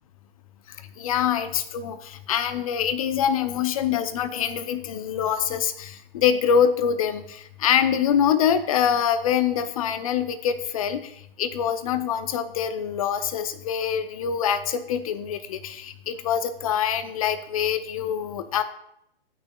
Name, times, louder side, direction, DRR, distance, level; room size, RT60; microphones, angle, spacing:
voice 1, 1.0-11.1 11.4-18.6, left 8 dB, 35° left, 11 dB, 0.6 m, -25 dB
11.0 x 9.0 x 2.3 m, 0.77 s
figure-of-eight pair, 135°, 30 cm